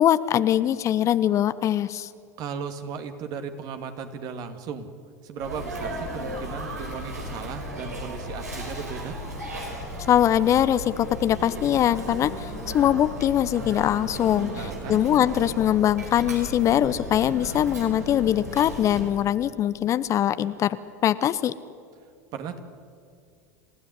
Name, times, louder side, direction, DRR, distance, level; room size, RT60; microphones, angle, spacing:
voice 1, 0.0-2.1 10.1-20.8 21.0-21.5, left 11 dB, 35° left, 15 dB, 0.8 m, -22 dB
voice 2, 2.4-4.9 5.2-9.2 14.5-15.0 22.3-22.6, right 6 dB, 45° right, 7 dB, 2.4 m, -36 dB
Sneeze, 5.4-19.1, equal, 85° right, 5.1 m, -35 dB
28.0 x 15.5 x 9.7 m, 2.2 s
hypercardioid pair, 80°, 9 cm